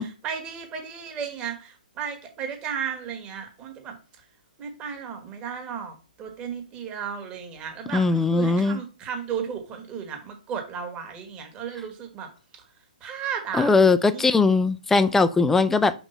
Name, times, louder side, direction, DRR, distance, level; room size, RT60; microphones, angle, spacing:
voice 1, 0.0-4.0 4.6-12.3 13.0-13.7 14.1-14.4, right 7 dB, 20° right, 4 dB, 1.5 m, -34 dB
voice 2, 7.9-8.8 13.5-15.9, left 3 dB, 5° left, 12 dB, 0.4 m, -20 dB
5.2 x 3.5 x 5.5 m, 0.33 s
figure-of-eight pair, 120°, 5 cm